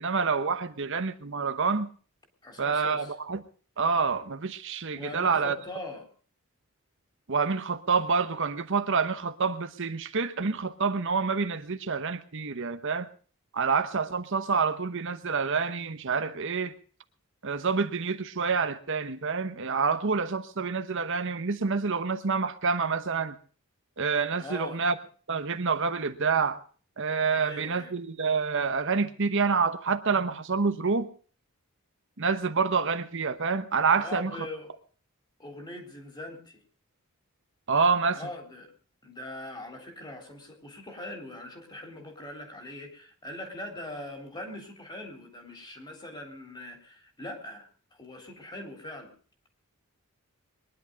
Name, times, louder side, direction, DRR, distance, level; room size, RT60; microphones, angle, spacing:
voice 1, 0.0-1.9 2.6-3.4 3.8-5.6 7.3-13.1 13.5-16.7 17.4-23.4 24.0-25.0 25.3-26.6 27.0-31.1 32.2-34.5 37.7-38.2, right 5 dB, 60° right, 1.0 m, -27 dB
voice 2, 2.4-3.1 4.9-6.1 24.4-24.9 27.3-27.9 34.0-34.7 35.4-36.6 38.1-38.7 39.0-49.1, left 1 dB, 20° left, 3.5 m, -41 dB
22.0 x 11.0 x 5.2 m
head